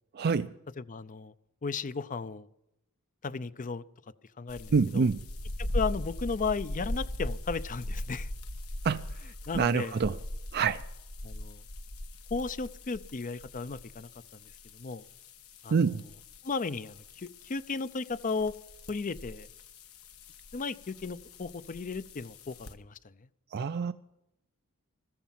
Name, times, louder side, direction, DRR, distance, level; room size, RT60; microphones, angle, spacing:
voice 1, 0.1-0.5 4.7-5.2 8.8-9.0 9.5-10.2 10.5-10.9 15.7-16.0 23.5-23.9, right 5 dB, 50° right, 10 dB, 0.4 m, -26 dB
voice 2, 0.8-1.3 1.6-2.5 3.2-3.8 4.4-5.1 5.6-8.3 9.5-10.0 11.2-11.6 12.3-14.4 14.7-15.0 15.6-15.8 16.4-18.5 18.9-19.5 20.5-23.0, left 4 dB, 35° left, 15 dB, 0.5 m, -35 dB
sound 1, 4.5-22.7, left 1 dB, 75° left, 1.2 m, -40 dB
14.5 x 14.0 x 5.8 m, 0.85 s
head